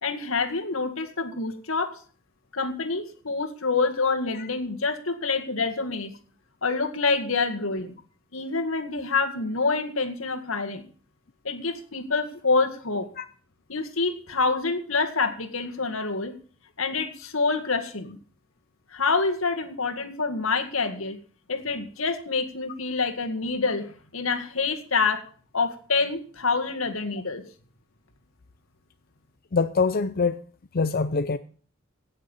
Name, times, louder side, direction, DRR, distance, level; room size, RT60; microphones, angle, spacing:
voice 1, 0.0-1.9 2.5-6.1 6.6-7.9 8.3-10.8 11.4-13.1 13.7-16.3 16.8-18.2 18.9-21.2 21.5-25.2 25.5-27.4, left 4 dB, 80° left, 2.0 m, -27 dB
voice 2, 29.5-30.4 30.7-31.4, left 4 dB, 50° left, 0.6 m, -24 dB
17.5 x 6.7 x 7.1 m
head